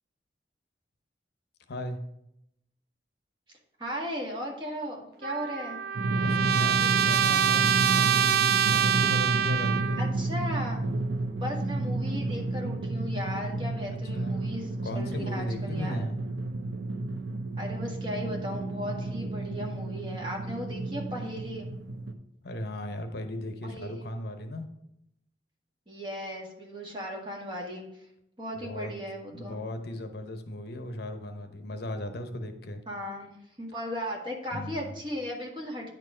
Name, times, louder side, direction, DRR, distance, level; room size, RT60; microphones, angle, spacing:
voice 1, 1.7-2.0 6.2-10.0 13.9-14.4 14.8-16.2 22.4-24.7 28.6-28.9 29.3-32.8 34.5-35.0, left 1 dB, 65° left, 6 dB, 0.8 m, -37 dB
voice 2, 3.8-5.8 10.0-10.8 11.3-16.1 17.6-21.7 23.6-24.1 25.9-28.0 28.4-29.6 32.9-33.3 33.6-35.9, equal, 30° right, -1 dB, 1.7 m, -36 dB
Trumpet, 5.2-10.1, right 9 dB, 55° right, 0.3 m, -25 dB
Drum, 6.0-22.1, right 2 dB, 75° right, 0.7 m, -31 dB
9.6 x 4.6 x 4.9 m, 0.80 s
head